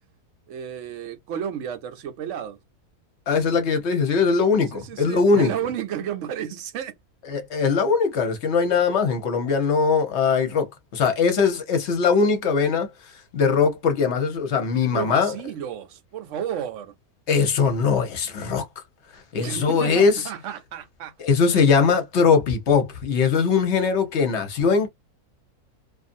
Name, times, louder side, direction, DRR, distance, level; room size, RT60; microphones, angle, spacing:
voice 1, 0.5-2.6 4.7-6.9 14.9-16.9 19.4-21.1, right 9 dB, 65° right, 0.8 m, -32 dB
voice 2, 3.3-5.5 7.3-12.9 13.3-15.3 17.3-18.8 19.1-20.3 21.2-24.9, left 5 dB, 55° left, 0.9 m, -21 dB
2.5 x 2.5 x 2.5 m
omnidirectional pair, 1.6 m